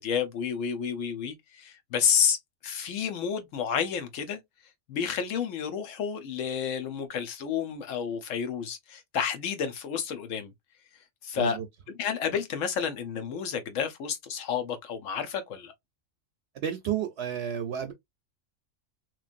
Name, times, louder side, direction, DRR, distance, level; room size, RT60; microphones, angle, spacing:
voice 1, 0.0-2.4 2.6-4.4 4.9-10.5 11.2-11.6 11.9-15.7, left 7 dB, 90° left, 1.1 m, -30 dB
voice 2, 11.4-11.7 16.6-17.9, right 9 dB, 65° right, 0.8 m, -31 dB
3.1 x 2.5 x 2.4 m
omnidirectional pair, 1.3 m